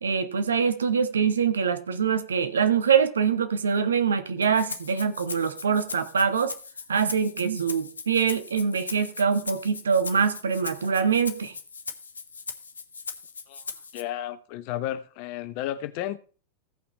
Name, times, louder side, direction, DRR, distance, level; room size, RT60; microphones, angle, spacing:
voice 1, 0.0-6.5 6.9-11.5, right 6 dB, 70° right, 1.2 m, -24 dB
Rattle (instrument), 4.4-14.0, left 5 dB, 75° left, 0.9 m, -39 dB
voice 2, 13.9-16.2, left 12 dB, 45° left, 0.8 m, -32 dB
15.0 x 5.8 x 4.2 m
figure-of-eight pair, 90°, 0 cm